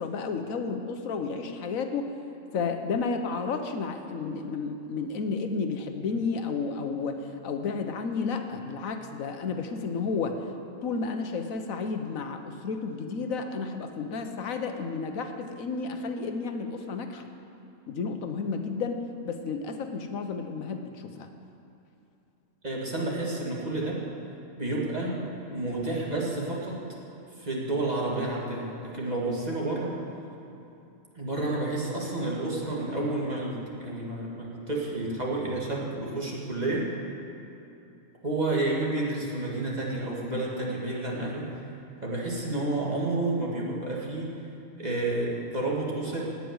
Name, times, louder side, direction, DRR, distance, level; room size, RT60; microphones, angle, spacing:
voice 1, 0.0-2.1 2.5-10.4 10.8-17.3 17.9-21.3, left 4 dB, 85° left, 6 dB, 1.3 m, -32 dB
voice 2, 22.6-24.0 24.6-25.2 25.5-26.8 27.4-29.9 31.1-36.9 38.2-41.4 42.0-44.3 44.8-46.2, right 2 dB, 30° right, -4 dB, 2.4 m, -30 dB
17.5 x 6.0 x 9.6 m, 2.8 s
omnidirectional pair, 1.4 m